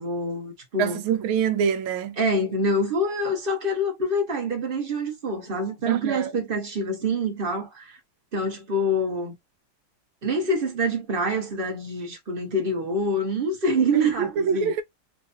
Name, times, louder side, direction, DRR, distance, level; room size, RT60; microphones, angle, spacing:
voice 1, 0.0-1.0 2.2-8.0 8.3-9.3 10.2-14.7, equal, 35° right, 1.0 m, -26 dB
voice 2, 0.8-2.2 5.9-6.3 13.9-14.8, right 8 dB, 80° right, 1.4 m, -25 dB
4.5 x 2.4 x 2.6 m
omnidirectional pair, 2.2 m